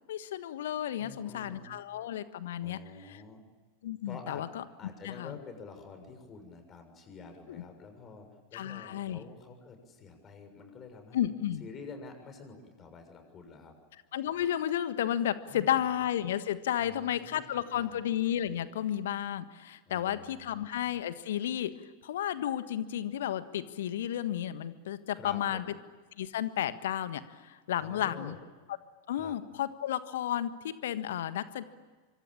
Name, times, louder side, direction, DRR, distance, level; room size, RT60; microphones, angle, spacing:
voice 1, 0.1-2.8 3.8-4.6 5.0-5.4 7.5-7.6 8.5-9.2 11.1-11.6 14.1-21.7 22.0-25.6 26.2-28.4 29.1-31.6, left 11 dB, 60° left, 13 dB, 1.5 m, -32 dB
voice 2, 1.0-1.8 2.6-3.4 4.0-4.4 4.8-11.3 11.6-13.7 15.5-15.8 16.8-18.0 19.8-20.6 25.1-25.8 27.8-28.4 29.1-29.4, left 4 dB, 30° left, 6 dB, 6.6 m, -48 dB
26.0 x 25.0 x 8.9 m, 1.4 s
figure-of-eight pair, 90°, 0 cm